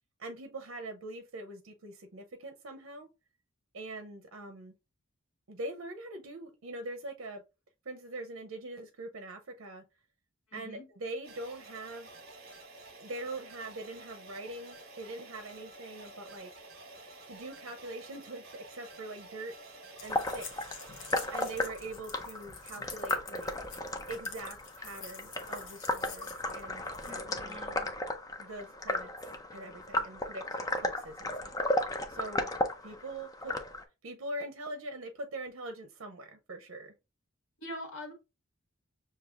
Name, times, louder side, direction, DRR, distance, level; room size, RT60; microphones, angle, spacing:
voice 1, 0.2-3.1 3.7-4.7 5.5-7.4 7.8-9.8 10.5-12.1 13.0-16.5 17.3-19.5 20.0-20.7 21.3-23.5 24.1-27.6 28.4-29.1 29.5-30.5 30.8-31.6 32.1-32.5 32.8-33.5 34.0-36.9, right 2 dB, 75° right, 0.6 m, -43 dB
voice 2, 10.5-10.9 27.0-27.9 37.6-38.1, left 1 dB, 90° left, 1.7 m, -44 dB
sound 1, 11.2-21.7, right 2 dB, 50° right, 1.1 m, -51 dB
sound 2, 20.0-27.2, left 5 dB, 65° left, 0.9 m, -49 dB
sound 3, 20.1-33.8, left 1 dB, 15° left, 0.5 m, -35 dB
6.6 x 2.8 x 2.4 m
head